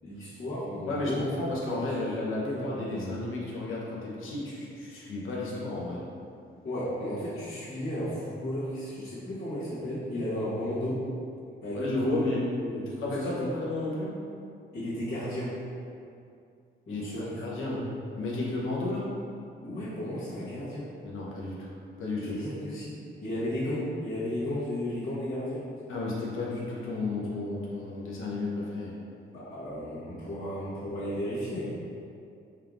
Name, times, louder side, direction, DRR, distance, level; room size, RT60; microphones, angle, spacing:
voice 1, 0.0-1.3 1.8-2.0 2.4-3.1 6.6-11.0 11.6-12.2 12.6-13.5 14.7-15.6 16.9-17.9 19.6-20.9 22.2-25.6 29.3-31.7, left 1 dB, 50° left, -14 dB, 1.3 m, -34 dB
voice 2, 0.8-6.0 11.7-12.4 13.0-14.1 16.9-17.0 17.4-17.8 18.2-19.1 21.0-21.7 22.0-22.4 25.9-28.9, left 2 dB, 80° left, -5 dB, 0.9 m, -32 dB
4.4 x 3.5 x 2.5 m, 2.5 s
cardioid pair, 85°, 21 cm